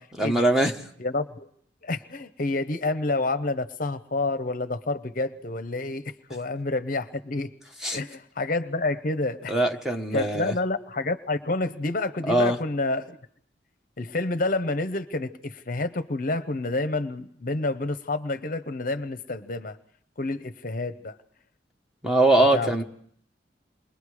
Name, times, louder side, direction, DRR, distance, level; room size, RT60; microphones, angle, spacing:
voice 1, 0.2-0.7 7.8-8.0 9.5-10.5 12.3-12.6 22.0-22.8, right 1 dB, 5° right, 3 dB, 1.2 m, -21 dB
voice 2, 1.0-1.5 1.8-7.5 7.9-9.5 10.1-13.2 14.0-19.8 20.2-21.2 22.5-22.7, left 2 dB, 50° left, 11 dB, 0.8 m, -28 dB
28.0 x 22.0 x 4.9 m, 0.66 s
head